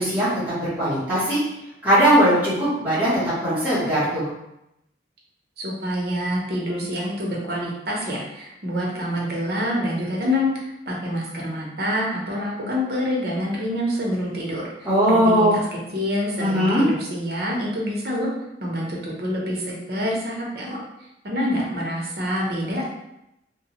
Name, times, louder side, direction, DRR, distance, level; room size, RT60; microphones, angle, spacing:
voice 1, 0.0-1.4 1.8-4.3 14.8-15.6 16.4-16.8, equal, 10° right, -12 dB, 1.0 m, -19 dB
voice 2, 5.6-18.3 18.6-20.8 21.2-22.9, equal, 55° right, -3 dB, 0.7 m, -27 dB
2.7 x 2.3 x 2.9 m, 0.86 s
head